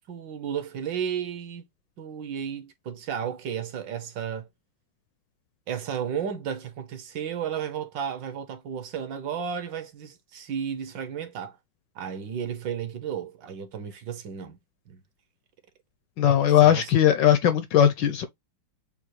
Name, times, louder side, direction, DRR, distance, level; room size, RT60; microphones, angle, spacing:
voice 1, 0.1-1.6 2.0-4.5 5.7-11.6 11.9-14.6 14.9-15.0 16.6-16.9, right 8 dB, 70° right, 1.3 m, -33 dB
voice 2, 16.2-18.3, left 10 dB, 75° left, 1.1 m, -19 dB
6.8 x 2.3 x 3.1 m
omnidirectional pair, 2.3 m